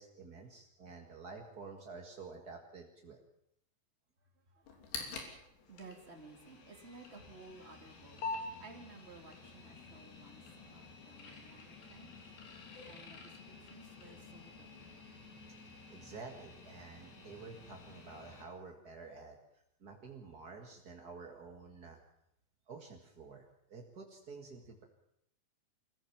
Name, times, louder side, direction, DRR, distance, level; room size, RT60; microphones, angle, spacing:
voice 1, 0.0-3.2 6.7-7.0 15.6-19.4 19.8-22.0 22.7-24.8, right 4 dB, 50° right, 2 dB, 1.2 m, -50 dB
voice 2, 4.5-12.4 12.6-15.0, right 3 dB, 20° right, 2 dB, 2.5 m, -56 dB
sound 1, 4.6-18.4, left 3 dB, 75° left, 5.2 m, -48 dB
25.0 x 15.5 x 7.3 m, 0.78 s
omnidirectional pair, 4.9 m